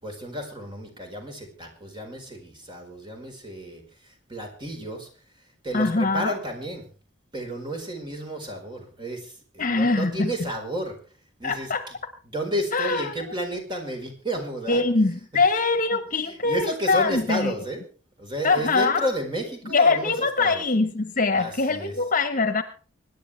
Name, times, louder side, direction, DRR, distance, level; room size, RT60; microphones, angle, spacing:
voice 1, 0.0-5.1 5.4-6.9 7.3-11.0 11.4-11.9 12.2-14.9 15.9-17.8 18.2-20.6 21.3-21.9, equal, 25° right, 3 dB, 4.6 m, -32 dB
voice 2, 5.7-6.3 9.6-10.3 11.4-11.8 12.7-13.0 14.7-17.5 18.4-19.1 19.7-22.6, left 3 dB, 45° left, 10 dB, 1.4 m, -23 dB
25.0 x 10.5 x 3.4 m, 0.38 s
head